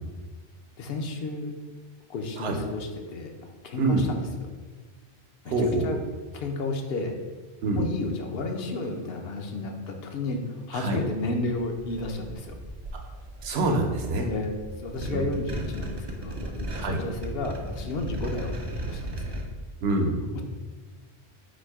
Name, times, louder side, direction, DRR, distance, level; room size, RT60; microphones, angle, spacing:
voice 1, 0.8-1.6 2.1-4.2 5.4-6.0 6.3-7.2 7.8-12.6 14.3-19.4 20.3-20.4, left 3 dB, 70° left, 4 dB, 0.8 m, -32 dB
voice 2, 5.5-5.9 7.6-7.8 10.7-11.0 13.4-14.3 15.1-15.2 16.8-17.0 19.8-20.2, right 2 dB, 70° right, 2 dB, 0.9 m, -25 dB
sound 1, 11.6-19.4, right 1 dB, 40° right, 0.3 m, -36 dB
4.2 x 2.7 x 4.6 m, 1.3 s
omnidirectional pair, 1.1 m